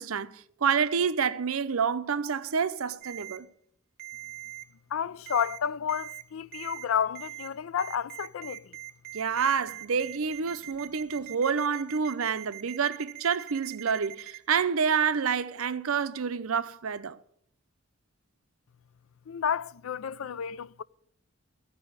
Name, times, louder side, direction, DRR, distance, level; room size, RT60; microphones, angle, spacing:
voice 1, 0.0-3.5 9.1-17.2, right 6 dB, 80° right, 0.6 m, -28 dB
Ringtone, 3.0-3.4 4.0-4.6 5.3-5.6 5.9-6.2 6.5-6.8 7.1-7.5 7.8-14.4, right 19 dB, 45° right, 1.4 m, -42 dB
voice 2, 4.9-8.8 19.3-20.8, left 8 dB, 75° left, 0.4 m, -31 dB
14.5 x 5.5 x 9.5 m
head